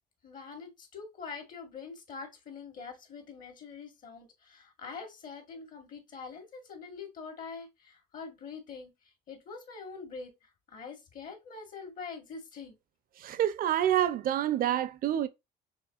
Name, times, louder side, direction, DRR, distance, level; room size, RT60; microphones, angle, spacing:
voice 1, 0.2-8.9 9.3-12.8, left 5 dB, 55° left, 1.9 m, -44 dB
voice 2, 13.2-15.3, right 11 dB, 60° right, 0.6 m, -27 dB
5.7 x 3.1 x 2.4 m
cardioid pair, 110°, 17 cm